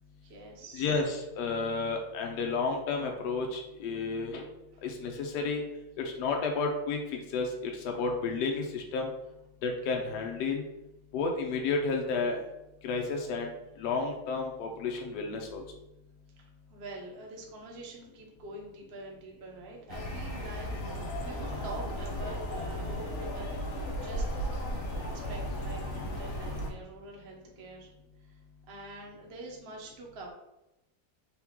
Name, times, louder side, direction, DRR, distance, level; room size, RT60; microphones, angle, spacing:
voice 1, 0.2-0.9 4.7-4.8 16.4-27.9 28.2-28.4 28.7-30.3, right 2 dB, 50° right, -1 dB, 0.8 m, -46 dB
voice 2, 0.7-4.4 4.8-5.6 6.0-9.1 9.6-10.6 11.1-12.4 12.8-15.6, left 4 dB, 75° left, 2 dB, 1.2 m, -31 dB
sound 1, 19.9-26.7, equal, 55° left, 0.9 m, -35 dB
3.8 x 3.0 x 3.5 m, 0.92 s
omnidirectional pair, 1.9 m